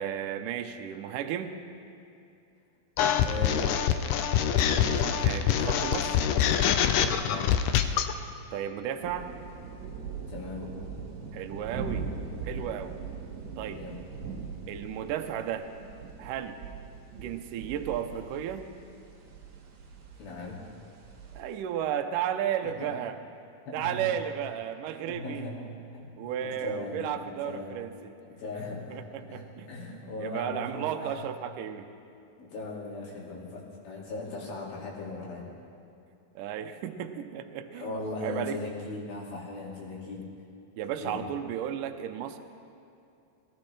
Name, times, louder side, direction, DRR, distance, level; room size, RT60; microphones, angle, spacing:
voice 1, 0.0-1.6 4.8-6.2 8.5-9.3 11.3-12.1 12.4-13.0 13.6-13.8 14.7-15.7 16.2-16.6 17.2-18.7 21.4-23.2 23.7-25.4 26.2-28.1 28.9-29.7 30.2-31.9 36.4-38.6 40.8-42.4, right 9 dB, 75° right, 6 dB, 2.0 m, -34 dB
sound 1, 3.0-8.1, left 9 dB, 90° left, 1.8 m, -25 dB
voice 2, 3.2-3.8 7.2-7.6 10.3-10.7 13.7-14.0 20.2-20.6 22.6-22.9 23.7-24.1 25.1-27.8 28.2-31.1 32.4-35.5 37.7-40.3 41.0-41.2, left 2 dB, 70° left, -4 dB, 4.1 m, -38 dB
sound 2, 9.0-21.4, right 5 dB, 60° right, 2.2 m, -41 dB
20.5 x 16.5 x 3.3 m, 2.6 s
omnidirectional pair, 4.5 m